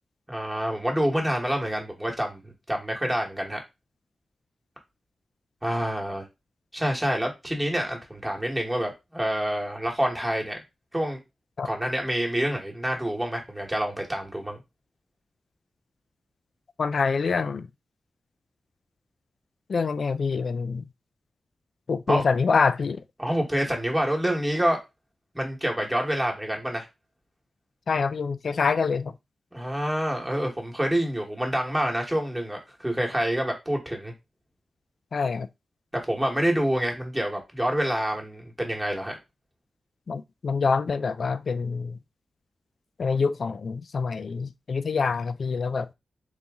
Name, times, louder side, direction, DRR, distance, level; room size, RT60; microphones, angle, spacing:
voice 1, 0.3-3.6 5.6-6.2 6.7-10.6 10.9-11.2 11.6-14.6 22.1-22.2 23.2-24.8 25.3-26.9 29.5-34.1 35.9-39.2, equal, 10° right, 1.2 m, -27 dB
voice 2, 16.8-17.7 19.7-20.9 21.9-23.0 27.9-29.2 35.1-35.5 40.1-42.0 43.0-45.9, left 5 dB, 60° left, 0.3 m, -26 dB
4.0 x 2.9 x 3.5 m
wide cardioid pair, 115°, 0 cm